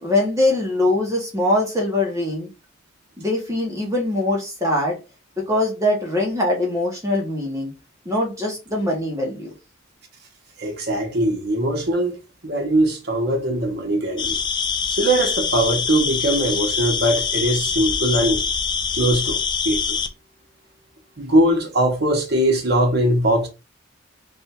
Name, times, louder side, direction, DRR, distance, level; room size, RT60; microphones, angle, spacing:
voice 1, 0.0-2.5 3.2-5.0 5.5-7.7 8.0-9.5, left 1 dB, 15° right, 1.1 m, -22 dB
voice 2, 10.6-14.4 15.0-18.4 19.0-19.4 19.6-19.8 21.2-23.5, right 1 dB, 55° right, 1.1 m, -21 dB
sound 1, 14.2-20.1, left 6 dB, 25° left, 0.4 m, -24 dB
3.4 x 2.7 x 4.3 m
head